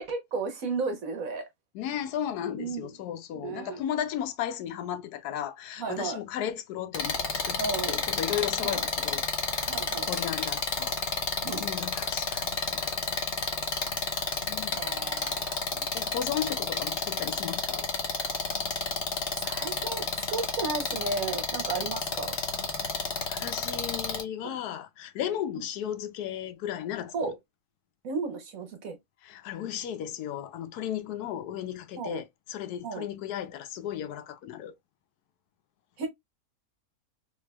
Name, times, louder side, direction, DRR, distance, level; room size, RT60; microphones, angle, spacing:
voice 1, 0.0-1.4 2.6-2.9 3.3-3.8 5.8-6.2 7.6-8.0 8.6-8.8 9.7-10.1 11.4-11.6 13.8-15.9 16.4-16.5 19.4-22.4 24.4-24.6 27.1-27.3 28.0-29.0 32.0-32.2 32.8-33.0 36.0-36.1, right 4 dB, 65° right, 1.4 m, -34 dB
voice 2, 1.7-7.2 7.4-7.6 7.9-9.8 10.0-11.0 11.4-12.9 14.5-14.8 15.9-17.9 23.3-27.4 29.2-34.8, left 10 dB, 90° left, 1.1 m, -35 dB
sound 1, 6.9-24.2, left 4 dB, 45° left, 1.0 m, -30 dB
3.3 x 3.2 x 2.2 m
omnidirectional pair, 1.6 m